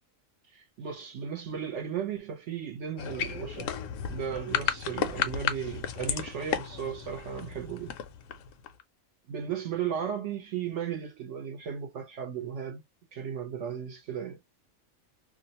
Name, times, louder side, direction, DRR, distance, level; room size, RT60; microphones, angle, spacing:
voice 1, 0.5-3.7 4.1-8.0 9.3-12.8 13.1-14.4, right 8 dB, 65° right, 0.9 m, -35 dB
sound 1, 3.0-8.8, left 8 dB, 75° left, 0.9 m, -33 dB
2.5 x 2.0 x 2.8 m
omnidirectional pair, 1.4 m